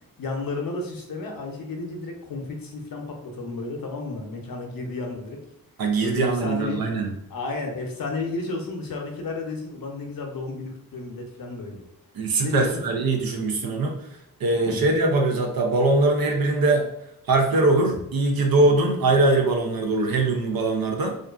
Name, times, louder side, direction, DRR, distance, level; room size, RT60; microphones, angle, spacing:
voice 1, 0.2-5.4 6.0-6.8 7.3-11.8 12.4-12.8 14.7-14.9, left 3 dB, 75° left, 1 dB, 0.6 m, -32 dB
voice 2, 5.8-7.1 12.1-14.0 14.4-16.8 17.3-21.2, right 2 dB, 85° right, 2 dB, 0.6 m, -22 dB
2.5 x 2.3 x 2.3 m, 0.80 s
wide cardioid pair, 100°, 35 cm